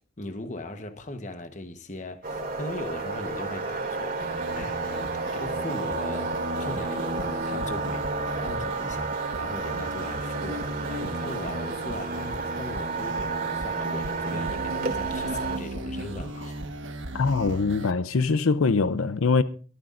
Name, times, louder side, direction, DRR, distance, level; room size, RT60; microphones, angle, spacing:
voice 1, 0.2-4.9 5.3-8.2 8.4-16.6, left 2 dB, 35° left, 1.2 m, -39 dB
sound 1, 2.2-15.6, right 3 dB, 45° right, 2.7 m, -31 dB
sound 2, 4.2-17.9, right 1 dB, 65° right, 1.4 m, -36 dB
voice 2, 17.1-19.4, left 4 dB, 90° left, 0.6 m, -23 dB
23.5 x 13.0 x 2.6 m
head